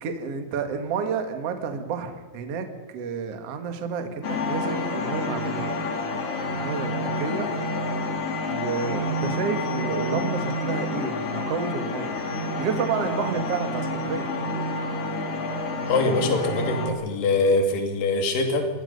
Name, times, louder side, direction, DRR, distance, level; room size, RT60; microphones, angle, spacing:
voice 1, 0.0-5.8 6.5-7.5 8.5-12.2 12.6-14.3, right 5 dB, 65° right, 6 dB, 1.5 m, -30 dB
sound 1, 4.2-16.9, left 2 dB, 75° left, 1.4 m, -28 dB
voice 2, 15.9-18.7, left 2 dB, 50° left, 4 dB, 3.7 m, -23 dB
26.5 x 20.0 x 5.4 m, 1.3 s
omnidirectional pair, 5.9 m